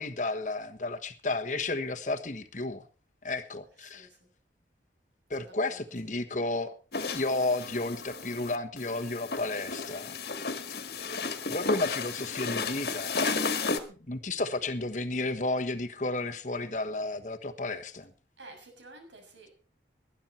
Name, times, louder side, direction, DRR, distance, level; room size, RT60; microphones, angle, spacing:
voice 1, 0.0-2.8 3.2-4.1 5.3-6.7 7.1-10.2 11.0-11.2 11.5-13.2 14.1-18.1, left 2 dB, 40° left, 8 dB, 1.3 m, -32 dB
voice 2, 3.8-4.2 5.3-5.8 11.2-11.4 14.5-14.6 18.4-19.6, right 2 dB, 90° right, 4 dB, 6.7 m, -52 dB
sound 1, 6.9-13.8, left 4 dB, 60° left, 1.8 m, -33 dB
19.5 x 11.5 x 4.4 m, 0.38 s
head